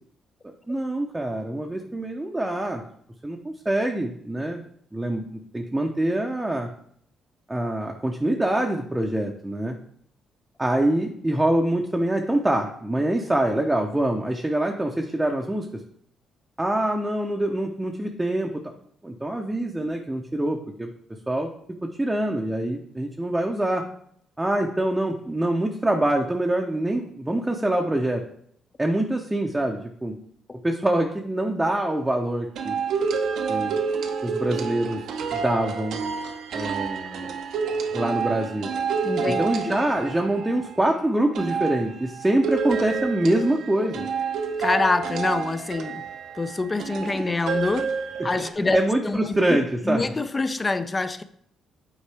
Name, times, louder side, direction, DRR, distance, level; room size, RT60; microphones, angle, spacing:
voice 1, 0.7-2.8 3.2-4.6 4.9-6.7 7.5-9.8 10.6-15.8 16.6-18.7 19.0-20.9 21.3-21.5 22.0-23.9 24.4-28.2 28.8-30.1 30.6-32.8 33.5-33.8 34.2-35.0 35.3-36.0 36.5-37.3 37.9-38.7 39.3-44.1 48.7-50.0, right 1 dB, 10° right, 1 dB, 0.7 m, -25 dB
sound 1, 32.6-40.8 41.4-48.5, right 5 dB, 75° right, 0.7 m, -29 dB
voice 2, 39.0-39.8 44.6-46.1 46.3-48.8 49.0-49.6 49.8-51.2, left 3 dB, 25° left, 12 dB, 0.5 m, -26 dB
8.3 x 4.4 x 3.4 m, 0.65 s
cardioid pair, 90°, 0 cm